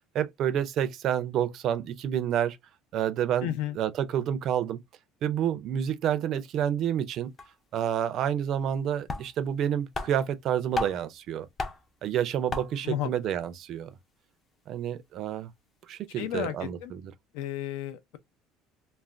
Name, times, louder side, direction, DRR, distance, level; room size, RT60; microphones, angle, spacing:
voice 1, 0.1-2.6 2.9-4.8 5.2-7.3 7.7-11.5 12.0-13.9 14.7-15.5 15.9-17.1, right 10 dB, 40° right, 0.4 m, -29 dB
voice 2, 3.4-3.8 12.8-13.1 16.2-16.5 16.8-16.9 17.3-18.2, left 12 dB, 85° left, 0.5 m, -32 dB
sound 1, 7.1-7.2 7.4-7.5 8.7-8.8 9.1-9.6 9.9-11.1 11.6-12.0 12.5-12.9, left 3 dB, 20° left, 0.4 m, -34 dB
2.4 x 2.1 x 3.2 m
cardioid pair, 165°, 0 cm